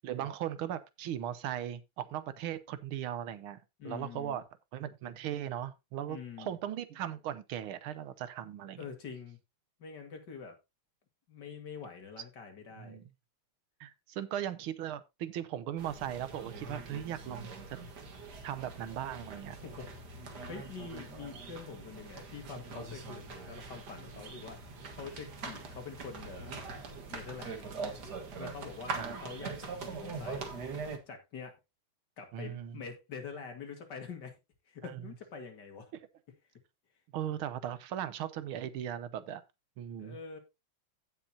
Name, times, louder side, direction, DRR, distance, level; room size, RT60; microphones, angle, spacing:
voice 1, 0.0-3.6 3.8-4.4 4.7-8.8 12.8-13.0 13.8-17.8 18.4-19.6 28.9-29.2 32.3-32.8 37.1-39.4 39.8-40.2, right 10 dB, 80° right, 1.7 m, -38 dB
voice 2, 3.8-4.4 6.1-6.6 8.8-9.4 9.8-10.6 11.3-13.0 19.6-20.2 20.5-24.6 24.9-27.7 28.4-30.5 31.1-31.5 32.2-34.4 34.7-35.9 40.0-40.4, left 5 dB, 55° left, 2.5 m, -45 dB
sound 1, 15.8-31.0, right 4 dB, 50° right, 2.0 m, -43 dB
16.0 x 5.9 x 2.8 m
omnidirectional pair, 2.3 m